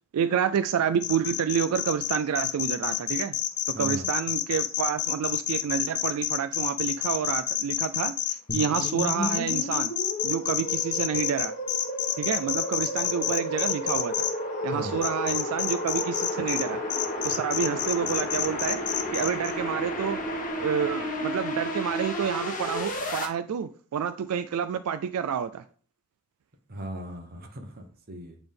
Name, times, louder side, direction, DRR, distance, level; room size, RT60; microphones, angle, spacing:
voice 1, 0.1-3.3 3.7-9.9 10.2-11.5 12.2-14.1 14.6-16.8 17.2-18.8 19.1-20.2 20.6-25.6, right 8 dB, 75° right, 11 dB, 0.3 m, -29 dB
sound 1, 1.0-14.3 15.0-16.6 16.9-19.5, left 12 dB, 85° left, 0.7 m, -28 dB
voice 2, 3.7-4.1 14.7-15.0 26.7-28.4, right 1 dB, 45° right, 5 dB, 1.1 m, -38 dB
sound 2, 8.5-23.3, equal, 35° left, 1.1 m, -32 dB
7.9 x 3.5 x 3.6 m, 0.43 s
head